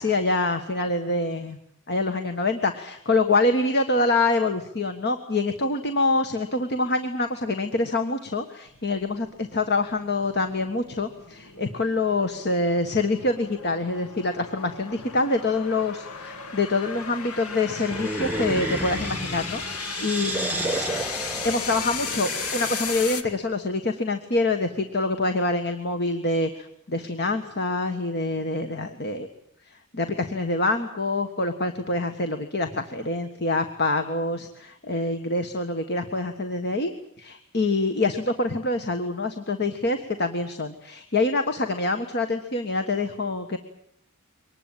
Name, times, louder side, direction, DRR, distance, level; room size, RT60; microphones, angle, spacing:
voice 1, 0.0-1.6 1.9-21.1 21.4-29.3 29.7-36.9 37.2-43.6, left 2 dB, 50° left, 7 dB, 1.5 m, -26 dB
sound 1, 8.7-23.2, left 6 dB, 80° left, 1.6 m, -36 dB
sound 2, 17.8-23.2, right 2 dB, 10° right, 1.0 m, -32 dB
24.0 x 20.0 x 9.0 m, 0.71 s
head